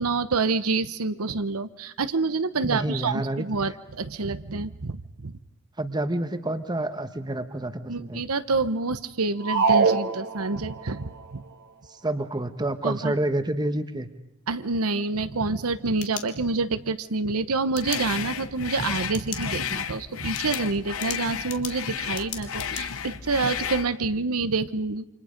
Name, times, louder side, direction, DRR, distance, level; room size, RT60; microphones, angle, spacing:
voice 1, 0.0-5.3 7.9-11.4 12.8-13.1 14.5-25.1, right 3 dB, 85° right, 12 dB, 0.9 m, -27 dB
voice 2, 2.6-3.5 5.8-8.2 11.9-14.1, right 1 dB, 20° right, 9 dB, 1.2 m, -28 dB
sound 1, 9.4-10.9, right 5 dB, 50° right, 1.6 m, -23 dB
sound 2, 15.6-16.8 17.7-18.0 19.0-19.5 19.8-19.9 20.3-22.8, left 10 dB, 90° left, 2.2 m, -37 dB
sound 3, 17.8-23.9, left 8 dB, 70° left, 0.9 m, -33 dB
29.0 x 26.0 x 5.2 m, 0.80 s
head